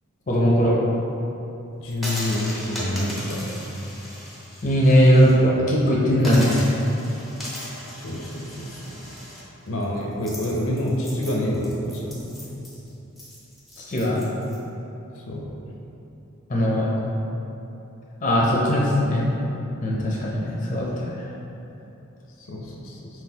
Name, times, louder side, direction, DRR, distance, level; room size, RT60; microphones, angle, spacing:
voice 1, 0.3-0.7 4.6-6.7 13.8-14.2 16.5-16.9 18.2-19.3 19.8-21.3, equal, 35° left, -4 dB, 0.6 m, -19 dB
voice 2, 1.8-3.5 8.0-9.0 9.7-12.5 15.3-15.5 22.5-23.1, left 1 dB, 75° left, -1 dB, 0.6 m, -28 dB
sound 1, 1.9-5.3 5.7-5.8 6.2-14.6, left 1 dB, ahead, 0.7 m, -37 dB
4.6 x 4.0 x 2.8 m, 2.9 s
head